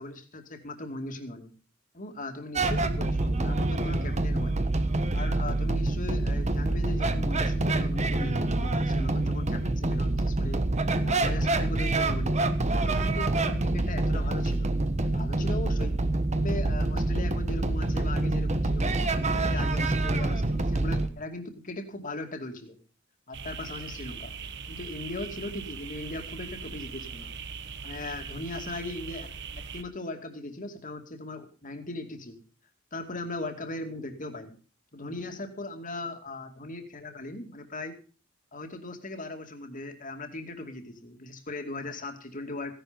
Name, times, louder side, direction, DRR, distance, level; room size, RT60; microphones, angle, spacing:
voice 1, 0.0-1.5 1.9-4.7 5.1-10.7 11.0-12.4 12.7-16.0 16.3-22.8 23.3-24.3 24.7-27.3 27.8-29.3 29.7-32.4 32.9-34.6 34.9-38.0 38.5-42.7, left 2 dB, 40° left, 6 dB, 2.5 m, -38 dB
sound 1, 2.6-21.1, right 2 dB, 35° right, 1.3 m, -26 dB
sound 2, 23.3-29.8, right 5 dB, 60° right, 1.4 m, -40 dB
16.5 x 11.0 x 5.2 m, 0.37 s
head